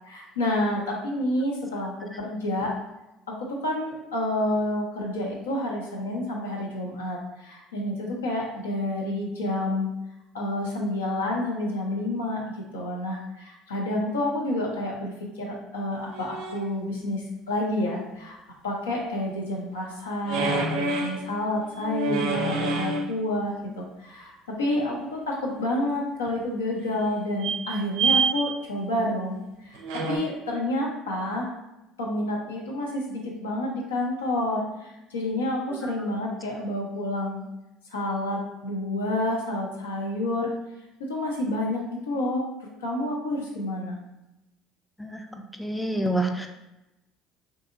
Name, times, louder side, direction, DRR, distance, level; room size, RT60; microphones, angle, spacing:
voice 1, 0.1-2.7 3.4-9.9 10.3-18.4 18.6-29.8 30.1-31.5 32.0-37.4 37.9-40.5 41.1-42.4 42.8-44.0, left 1 dB, 85° left, -2 dB, 0.5 m, -29 dB
sound 1, 16.0-16.6 20.2-21.2 21.8-23.1 26.3-26.4 27.4-28.3 29.7-30.2, right 3 dB, 75° right, 0.4 m, -27 dB
voice 2, 45.6-46.5, right 1 dB, 5° left, 4 dB, 0.4 m, -27 dB
2.6 x 2.6 x 2.5 m, 0.94 s
hypercardioid pair, 65°, 0 cm